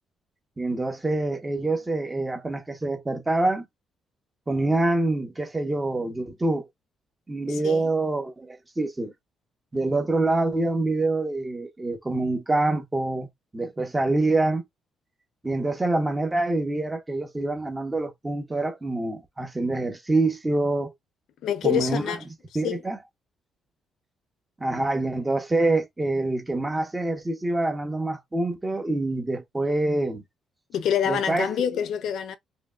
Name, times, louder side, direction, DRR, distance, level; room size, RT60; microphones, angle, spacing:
voice 1, 0.6-3.7 4.5-6.7 7.3-9.1 9.7-13.3 13.5-14.6 15.4-20.9 21.6-22.0 22.5-23.0 24.6-30.2 31.1-31.5, right 2 dB, 15° right, 1.0 m, -26 dB
voice 2, 7.5-7.9 21.4-22.2 22.6-22.8 30.7-32.4, left 9 dB, 65° left, 0.7 m, -26 dB
5.0 x 3.1 x 2.4 m
cardioid pair, 145°, 0 cm